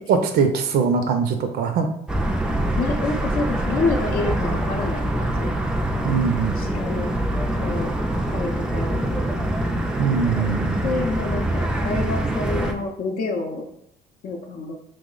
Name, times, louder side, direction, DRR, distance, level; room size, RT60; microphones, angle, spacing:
voice 1, 0.1-1.9 6.0-6.5 10.0-10.8, right 5 dB, 70° right, 6 dB, 0.5 m, -21 dB
sound 1, 2.1-12.7, right 1 dB, 5° right, 0.3 m, -24 dB
voice 2, 2.8-5.5 6.6-7.2 7.6-7.9 8.3-9.2 10.8-13.7 14.2-14.7, left 3 dB, 60° left, 3 dB, 0.5 m, -28 dB
3.0 x 2.0 x 3.7 m, 0.70 s
cardioid pair, 110°, 17 cm